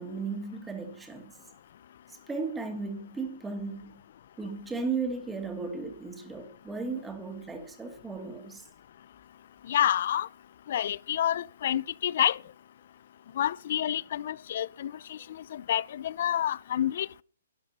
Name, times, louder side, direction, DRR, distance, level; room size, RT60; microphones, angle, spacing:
voice 1, 0.0-1.4 2.3-4.0 4.4-8.7, right 4 dB, 10° right, 2.4 m, -35 dB
voice 2, 9.7-10.3 10.7-12.4 13.4-15.2 15.5-17.2, left 10 dB, 55° left, 0.5 m, -28 dB
12.0 x 11.0 x 5.5 m
hypercardioid pair, 135°, 0 cm